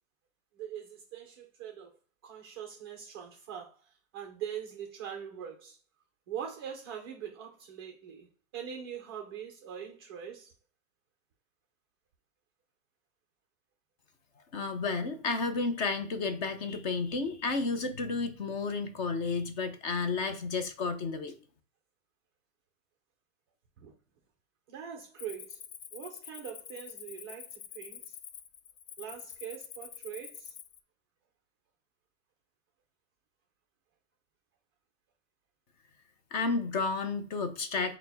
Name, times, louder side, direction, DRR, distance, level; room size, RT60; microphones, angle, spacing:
voice 1, 0.6-1.9 2.2-3.8 4.1-5.8 6.3-8.3 8.5-10.5 23.8-23.9 24.7-25.6 25.9-28.2 29.0-30.5, right 8 dB, 20° right, 0.4 m, -42 dB
voice 2, 14.5-21.3 36.3-38.0, left 4 dB, 35° left, 0.7 m, -32 dB
Cricket, 25.2-30.8, left 9 dB, 65° left, 0.6 m, -47 dB
4.4 x 2.1 x 4.0 m
hypercardioid pair, 145°, 40 cm